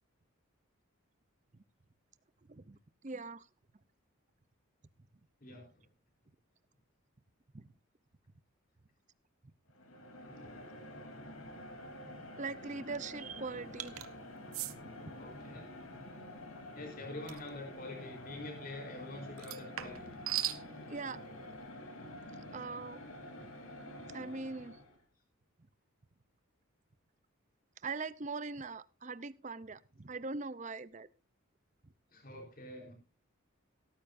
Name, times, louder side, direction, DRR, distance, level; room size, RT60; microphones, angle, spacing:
voice 1, 2.5-3.5 7.5-7.7 9.4-9.5 12.4-14.0 15.0-15.1 20.9-21.2 22.5-23.0 23.4-23.5 24.1-24.8 27.8-31.1, right 4 dB, 35° right, 16 dB, 0.6 m, -41 dB
sound 1, 9.7-25.0, left 1 dB, 80° left, 3.3 m, -48 dB
sound 2, 13.8-14.1 14.5-14.7 17.3-17.5 19.4-20.6, right 12 dB, 85° right, 1.0 m, -37 dB
voice 2, 15.2-15.7 16.7-20.1 22.2-22.3 32.1-32.9, left 2 dB, 40° left, 1 dB, 3.9 m, -46 dB
17.0 x 13.5 x 2.6 m, 0.31 s
head